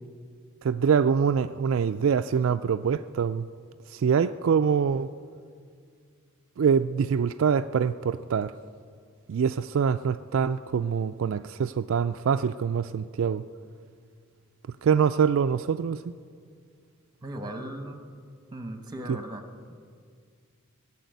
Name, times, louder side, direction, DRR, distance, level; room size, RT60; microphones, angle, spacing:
voice 1, 0.6-3.5 3.9-5.1 6.6-8.5 9.3-13.4 14.8-16.1 19.1-19.2, right 6 dB, 65° right, 0.3 m, -24 dB
voice 2, 17.2-18.0 18.5-19.7, right 1 dB, 20° right, 1.1 m, -37 dB
19.5 x 7.3 x 9.3 m
head